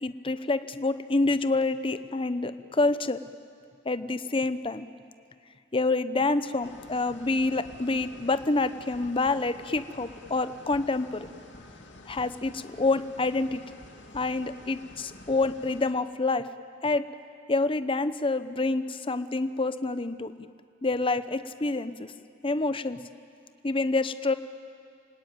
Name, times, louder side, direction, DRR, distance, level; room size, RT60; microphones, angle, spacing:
voice 1, 0.0-3.2 3.8-4.9 5.7-11.3 12.1-13.6 14.1-16.5 16.8-17.1 17.5-20.5 20.8-22.1 22.4-23.0 23.6-24.3, left 3 dB, 30° left, 12 dB, 0.8 m, -27 dB
sound 1, 6.6-15.9, left 2 dB, 80° left, 2.6 m, -49 dB
29.0 x 19.0 x 9.1 m, 2.4 s
head